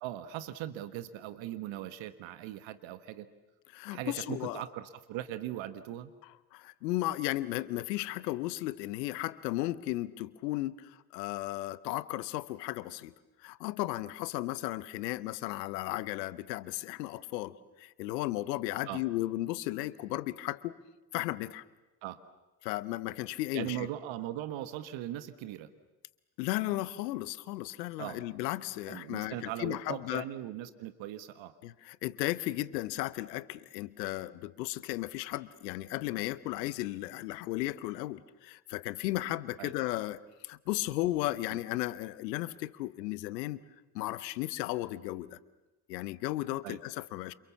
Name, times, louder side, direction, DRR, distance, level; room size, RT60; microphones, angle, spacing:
voice 1, 0.0-3.3 3.9-6.1 18.9-19.0 22.0-22.2 23.5-25.7 28.0-28.2 28.9-31.5 39.6-39.7 41.5-41.6 46.6-46.8, right 13 dB, 65° right, 11 dB, 1.5 m, -39 dB
voice 2, 3.7-4.6 6.5-13.1 13.4-20.8 21.1-21.6 22.6-23.9 26.4-30.2 31.6-43.6 43.9-45.4 45.9-47.3, left 17 dB, 80° left, 17 dB, 1.0 m, -35 dB
29.0 x 28.0 x 7.2 m, 1.0 s
hypercardioid pair, 45°, 48 cm